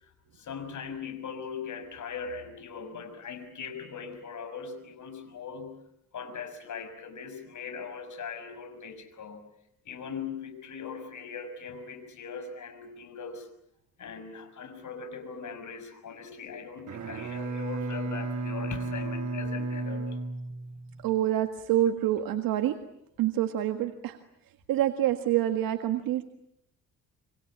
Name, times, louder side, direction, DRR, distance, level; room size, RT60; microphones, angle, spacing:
voice 1, 0.3-5.8 6.1-9.5 9.8-13.5 14.0-20.2, left 5 dB, 60° left, 9 dB, 6.2 m, -40 dB
Bowed string instrument, 16.8-21.1, right 3 dB, 55° right, 3.2 m, -34 dB
voice 2, 21.0-22.8 23.2-24.2 24.7-26.2, right 12 dB, 80° right, 7 dB, 1.8 m, -26 dB
27.0 x 25.5 x 8.7 m, 0.76 s
cardioid pair, 80°, 34 cm